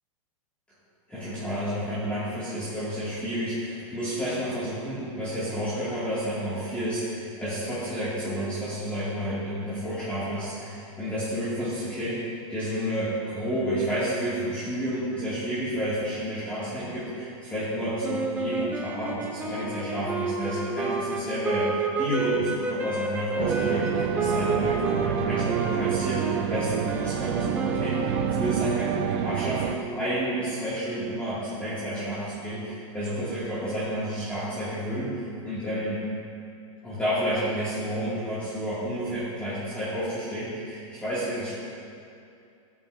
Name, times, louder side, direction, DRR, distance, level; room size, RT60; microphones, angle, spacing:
voice 1, 1.1-36.0 36.8-41.5, equal, 5° left, -13 dB, 2.4 m, -30 dB
sound 1, 18.0-28.8, right 3 dB, 10° right, 0.7 m, -30 dB
sound 2, 23.4-29.8, right 11 dB, 50° right, 0.4 m, -28 dB
14.5 x 8.4 x 2.7 m, 2.5 s
hypercardioid pair, 140°, 18 cm